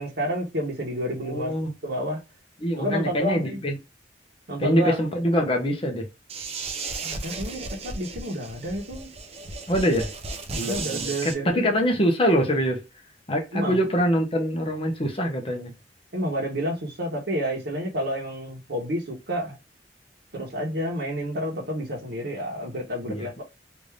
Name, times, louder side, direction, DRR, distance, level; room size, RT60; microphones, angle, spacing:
voice 1, 0.0-1.5 1.8-2.2 2.8-3.6 4.5-5.0 7.0-9.1 10.5-11.6 13.5-13.8 16.1-19.6 20.3-23.4, equal, 65° right, 1.0 m, -29 dB
voice 2, 1.2-1.7 2.6-3.7 4.6-6.1 9.7-10.1 10.5-12.8 13.3-15.8 23.0-23.3, equal, 30° left, 0.9 m, -24 dB
sound 1, 6.3-11.3, right 3 dB, 35° right, 0.6 m, -35 dB
3.4 x 2.6 x 3.3 m
head